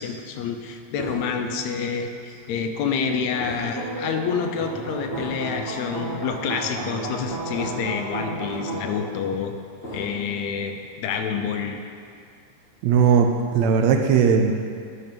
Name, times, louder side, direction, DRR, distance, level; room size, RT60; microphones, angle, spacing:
voice 1, 0.0-9.6 9.9-11.8, left 6 dB, 80° left, 5 dB, 1.8 m, -28 dB
sound 1, 1.0-1.6 2.2-2.4 3.3-3.9 4.3-4.5 5.1-5.6 6.2-6.3 7.5-8.0 8.3-9.0 9.8-10.3, equal, 40° left, 1.0 m, -37 dB
sound 2, 3.5-8.8, right 2 dB, 35° right, 1.0 m, -32 dB
voice 2, 12.8-14.5, right 6 dB, 80° right, 4 dB, 1.7 m, -18 dB
12.0 x 4.2 x 5.1 m, 2.3 s
omnidirectional pair, 3.3 m